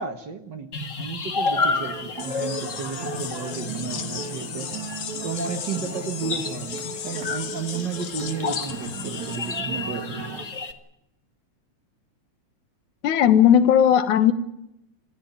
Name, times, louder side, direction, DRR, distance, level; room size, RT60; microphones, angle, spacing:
voice 1, 0.0-4.7 5.2-10.3, right 5 dB, 45° right, 9 dB, 1.7 m, -33 dB
sound 1, 0.7-10.7, left 4 dB, 35° left, 1.4 m, -31 dB
sound 2, 1.5-10.5, right 5 dB, 65° right, 3.5 m, -37 dB
sound 3, 2.2-9.6, left 8 dB, 60° left, 2.7 m, -36 dB
voice 2, 13.0-14.3, left 9 dB, 80° left, 11 dB, 2.8 m, -16 dB
26.0 x 15.0 x 9.6 m, 0.85 s
omnidirectional pair, 3.5 m